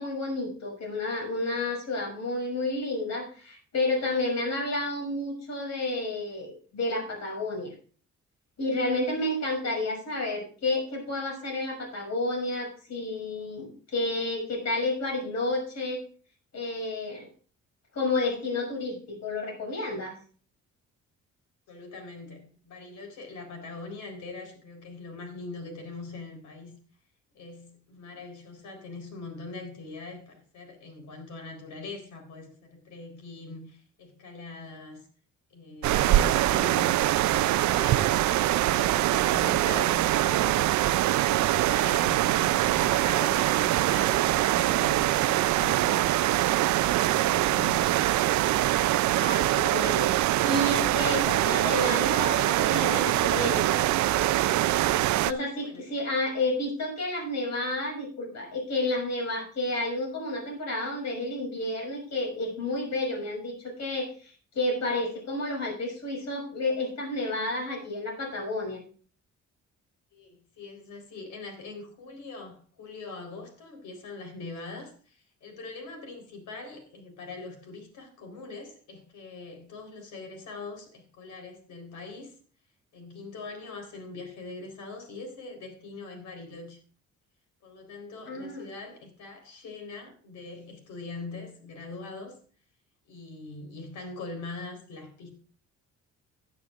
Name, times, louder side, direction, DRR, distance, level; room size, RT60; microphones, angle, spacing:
voice 1, 0.0-7.7 8.6-16.0 16.5-17.3 17.9-20.2 49.2-53.9 55.2-68.8 88.3-88.6, left 2 dB, 60° left, 6.5 m, -31 dB
voice 2, 21.7-26.7 27.3-35.1 35.5-40.7 41.0-46.1 46.7-48.1 55.6-55.9 70.1-82.3 82.9-86.8 87.6-92.4 93.1-95.3, left 3 dB, 80° left, 4.0 m, -42 dB
sound 1, 35.8-55.3, right 15 dB, 70° right, 0.5 m, -23 dB
16.0 x 9.5 x 2.5 m
cardioid pair, 90°, 30 cm